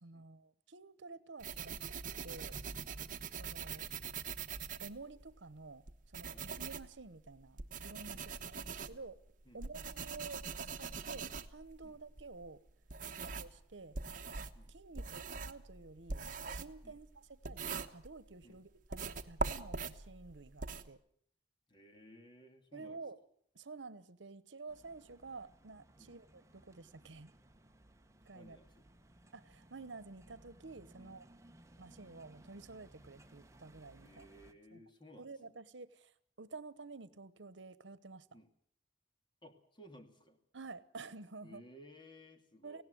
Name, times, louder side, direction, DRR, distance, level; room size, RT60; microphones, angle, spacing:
voice 1, 0.0-1.8 2.2-2.6 3.3-3.9 4.8-9.2 9.5-10.4 10.8-12.6 13.2-14.0 14.7-21.0 22.7-23.2 23.5-27.3 28.3-28.6 29.3-31.3 31.8-34.3 34.7-34.8 35.2-38.3 40.5-41.6 42.6-42.8, right 3 dB, 80° right, 17 dB, 1.0 m, -51 dB
sound 1, 1.4-5.4 5.9-13.6 13.9-18.4 18.9-20.9, right 5 dB, 45° right, 1.1 m, -43 dB
voice 2, 21.7-23.0 26.0-26.2 28.3-28.9 31.0-31.2 34.0-35.6 38.3-38.5 39.4-40.4 41.4-42.8, equal, 25° left, 6 dB, 2.5 m, -58 dB
sound 2, 24.7-34.5, right 1 dB, 15° right, 1.1 m, -62 dB
18.5 x 17.0 x 9.4 m, 0.64 s
head